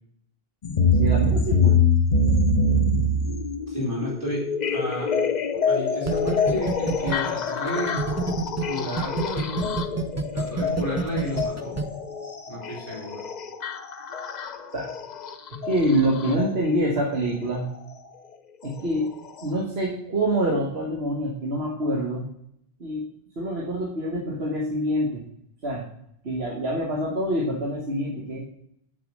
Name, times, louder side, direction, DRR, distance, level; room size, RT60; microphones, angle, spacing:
sound 1, 0.6-16.5 17.7-17.8 18.6-18.7 19.4-19.5, left 3 dB, 50° left, 0.8 m, -25 dB
voice 1, 1.0-1.8 14.7-14.9 15.5-17.7 18.6-19.1 19.4-22.2 22.8-23.0 23.4-25.2 25.6-25.9 26.2-28.5, right 1 dB, 80° right, -2 dB, 1.6 m, -26 dB
voice 2, 3.7-5.1 5.7-8.0 8.6-9.8 10.3-11.8 12.5-13.2, left 1 dB, 55° right, -4 dB, 3.5 m, -32 dB
sound 2, 6.1-8.6 9.0-11.8, right 5 dB, 20° right, 0.6 m, -27 dB
6.4 x 6.1 x 6.3 m, 0.71 s
omnidirectional pair, 1.0 m